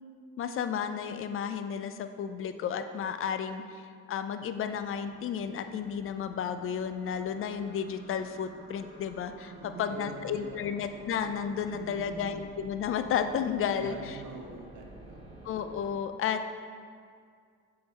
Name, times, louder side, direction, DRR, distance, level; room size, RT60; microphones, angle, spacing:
voice 1, 0.4-3.6 4.1-14.2 15.4-16.4, left 7 dB, 45° left, 9 dB, 0.4 m, -32 dB
sound 1, 4.5-15.9, right 1 dB, 20° right, 1.5 m, -51 dB
voice 2, 9.5-10.6 11.7-12.3 13.7-15.3, right 4 dB, 85° right, 1 dB, 0.9 m, -44 dB
6.7 x 3.8 x 4.0 m, 2.1 s
cardioid pair, 90°, 30 cm